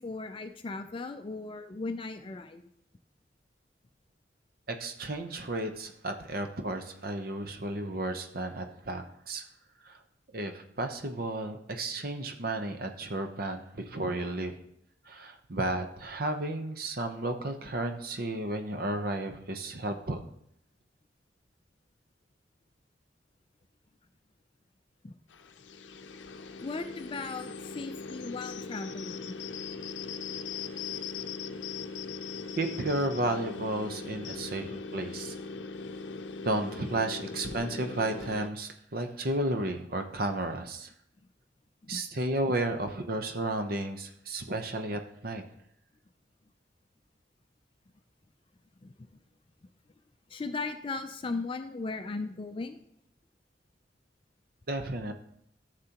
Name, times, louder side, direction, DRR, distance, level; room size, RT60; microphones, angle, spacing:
voice 1, 0.0-2.6 25.0-25.1 26.6-29.3 41.8-42.0 48.8-49.1 50.3-52.8, left 3 dB, 30° left, 7 dB, 0.4 m, -37 dB
voice 2, 4.7-9.4 9.8-10.0 10.3-14.5 15.1-20.2 32.6-35.4 36.4-40.9 41.9-45.4 54.7-55.1, right 2 dB, 55° right, 6 dB, 0.8 m, -33 dB
sound 1, 25.3-38.5, left 4 dB, 85° left, 0.6 m, -40 dB
13.5 x 6.7 x 2.9 m, 0.74 s
head